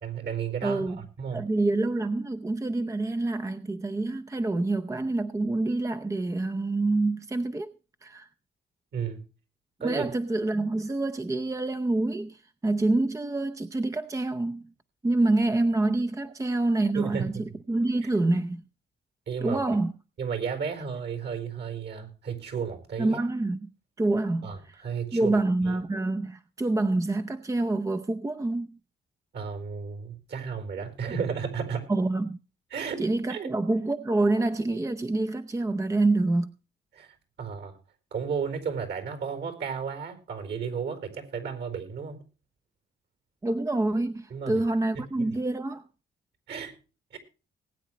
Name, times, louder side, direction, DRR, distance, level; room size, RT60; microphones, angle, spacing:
voice 1, 0.0-1.4 8.9-9.2 9.8-10.1 16.9-17.4 18.0-18.1 19.3-19.6 20.2-23.2 24.4-25.4 25.6-25.8 29.3-31.9 32.7-33.0 33.3-33.5 36.9-37.8 38.1-42.2 44.3-44.6 45.2-45.3 46.5-46.7 47.1-47.2, right 6 dB, 60° right, 4.3 m, -33 dB
voice 2, 0.6-1.0 1.3-7.7 8.0-8.3 9.8-14.7 15.0-18.6 19.4-19.9 23.0-23.7 24.0-24.8 25.1-28.8 31.9-32.4 33.0-36.5 43.4-45.8, right 2 dB, 15° right, 0.7 m, -27 dB
20.0 x 9.0 x 3.1 m
cardioid pair, 90°, 20 cm